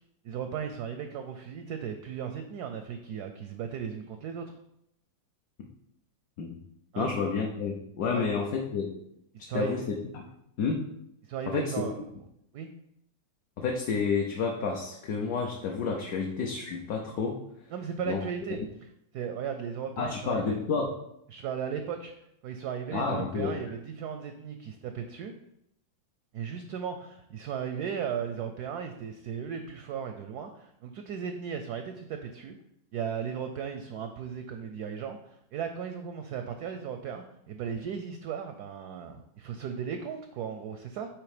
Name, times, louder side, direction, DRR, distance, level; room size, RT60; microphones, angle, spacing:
voice 1, 0.2-4.6 6.9-7.1 8.1-8.2 9.5-9.9 11.2-12.0 12.5-12.7 17.7-18.6 19.1-20.6 21.3-22.1 22.4-25.3 26.3-32.6 32.9-41.1, right 7 dB, 70° right, 7 dB, 0.9 m, -36 dB
voice 2, 7.0-9.0 9.5-10.2 10.6-10.9 11.5-11.7 13.6-17.4 18.1-18.2 20.0-20.9 22.9-23.6, left 5 dB, 60° left, 0 dB, 1.1 m, -30 dB
8.5 x 3.1 x 4.9 m, 0.76 s
omnidirectional pair, 2.1 m